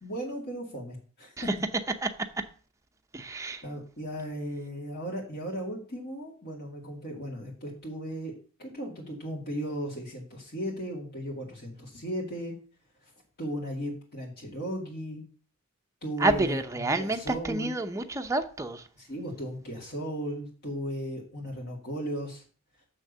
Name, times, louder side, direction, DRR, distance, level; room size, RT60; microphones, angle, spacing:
voice 1, 0.0-1.3 3.6-8.3 8.6-12.5 13.4-15.2 16.0-16.6 17.0-17.7 19.0-22.4, equal, 50° left, 2.3 m, -36 dB
voice 2, 2.0-2.4 3.1-3.6 16.2-18.9, right 2 dB, 15° right, 0.7 m, -29 dB
6.6 x 6.4 x 6.7 m
head